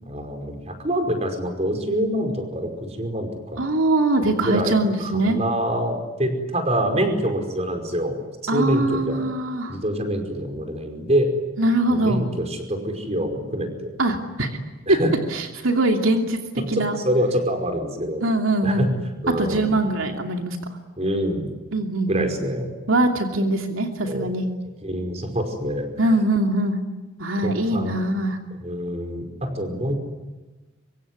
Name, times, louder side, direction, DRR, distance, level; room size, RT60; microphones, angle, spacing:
voice 1, 0.0-2.7 3.0-3.7 4.4-8.2 8.5-9.2 9.7-11.3 11.9-13.9 14.9-15.1 16.7-18.2 18.6-18.9 19.2-19.8 21.0-21.5 22.1-22.7 24.0-24.3 24.8-25.9 26.1-26.2 27.4-28.0 28.6-30.0, equal, 30° right, 5 dB, 5.1 m, -25 dB
voice 2, 3.6-5.4 8.5-9.8 11.6-12.3 14.0-14.5 14.9-15.0 15.3-17.0 18.2-18.9 19.4-20.6 21.7-22.3 22.9-24.4 26.0-26.8 27.2-28.4, right 2 dB, 80° right, 4 dB, 2.8 m, -22 dB
25.0 x 24.5 x 9.7 m, 1.2 s
head